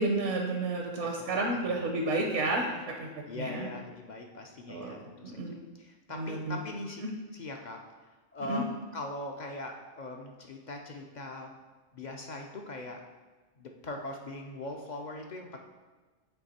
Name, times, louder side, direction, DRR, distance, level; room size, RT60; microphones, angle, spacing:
voice 1, 0.0-3.1 3.3-3.7 4.7-5.0 5.2-5.5 6.1-6.6 7.0-7.1 8.4-8.6, right 2 dB, 70° right, 2 dB, 1.0 m, -31 dB
voice 2, 3.3-5.4 5.8-7.0 7.3-7.8 8.3-11.5 11.9-13.0 13.6-15.6, left 2 dB, 50° left, 2 dB, 0.5 m, -41 dB
8.0 x 3.2 x 4.2 m, 1.3 s
omnidirectional pair, 1.3 m